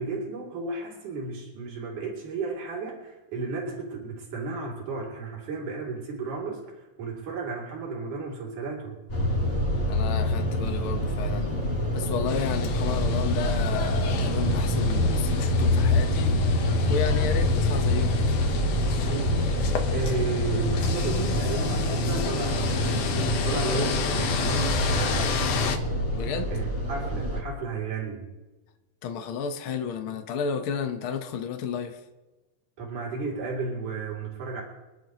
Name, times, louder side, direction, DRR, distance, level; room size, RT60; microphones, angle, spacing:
voice 1, 0.0-9.0 19.0-19.5 19.9-23.2 23.4-25.3 26.5-28.3 32.8-34.6, right 4 dB, 85° right, 4.5 m, -33 dB
sound 1, 9.1-27.4, left 1 dB, 20° left, 3.5 m, -26 dB
voice 2, 9.9-11.6 11.9-18.3 21.1-21.4 26.1-26.5 29.0-32.0, left 6 dB, 55° left, 1.8 m, -32 dB
sound 2, 12.3-25.8, left 7 dB, 85° left, 2.7 m, -33 dB
26.5 x 11.0 x 3.1 m
omnidirectional pair, 3.5 m